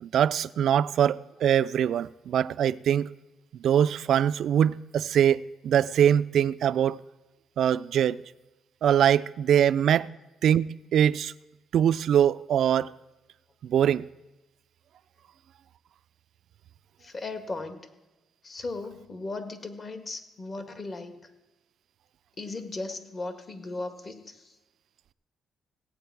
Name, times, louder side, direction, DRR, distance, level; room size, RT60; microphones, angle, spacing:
voice 1, 0.0-3.1 3.6-7.0 7.6-8.2 8.8-10.1 10.4-11.3 11.7-12.9 13.6-14.0, right 9 dB, 70° right, 0.4 m, -23 dB
voice 2, 17.0-17.9 18.4-21.2 22.4-24.6, left 3 dB, 40° left, 1.6 m, -37 dB
17.0 x 8.4 x 4.7 m
cardioid pair, 90°, 0 cm